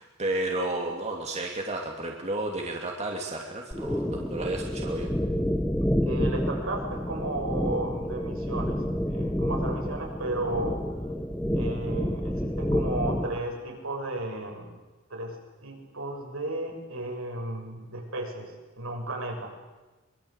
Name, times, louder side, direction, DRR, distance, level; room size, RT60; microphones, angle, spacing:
voice 1, 0.0-5.1, right 2 dB, 30° right, 0 dB, 2.8 m, -32 dB
sound 1, 3.7-13.4, equal, 5° left, 1.2 m, -29 dB
voice 2, 6.0-10.8 11.5-14.7 15.1-15.4 15.6-19.5, right 1 dB, 75° right, 0 dB, 6.9 m, -34 dB
24.0 x 23.5 x 8.2 m, 1.2 s
head